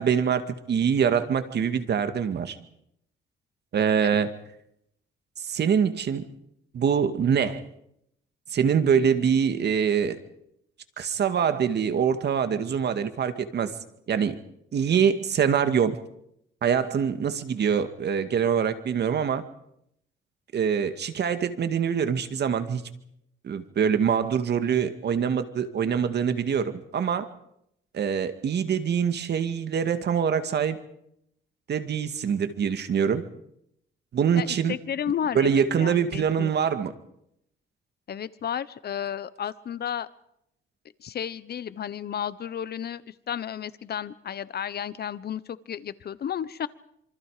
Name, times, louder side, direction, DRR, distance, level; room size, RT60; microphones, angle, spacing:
voice 1, 0.0-2.6 3.7-4.3 5.4-6.3 6.7-7.6 8.5-10.2 11.0-13.7 14.1-14.4 14.7-16.0 16.6-19.4 20.5-22.8 23.4-27.3 27.9-30.8 31.7-33.2 34.1-34.8 35.3-36.9, right 7 dB, 60° right, 9 dB, 2.2 m, -24 dB
voice 2, 34.3-36.5 38.1-40.1 41.0-46.7, left 9 dB, 55° left, 16 dB, 1.1 m, -33 dB
26.5 x 24.5 x 5.1 m, 0.77 s
cardioid pair, 90°, 20 cm